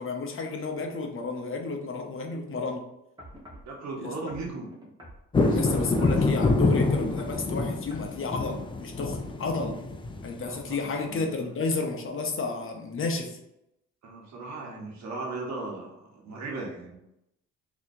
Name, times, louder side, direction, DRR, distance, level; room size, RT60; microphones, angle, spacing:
voice 1, 0.0-2.8 4.0-4.1 5.5-9.8 10.2-13.4, left 3 dB, 45° left, 2 dB, 0.8 m, -32 dB
sound 1, 3.2-3.7 4.3-5.6 6.1-6.6 7.0-7.4 7.9-8.1 8.8-8.9, equal, 15° right, 1.3 m, -46 dB
voice 2, 3.6-4.7 5.4-6.2 10.4-11.4 14.0-17.0, right 3 dB, 65° right, -1 dB, 1.2 m, -38 dB
sound 2, 5.3-10.8, left 3 dB, 15° left, 0.4 m, -26 dB
4.0 x 2.9 x 2.7 m, 0.83 s
cardioid pair, 90°, 30 cm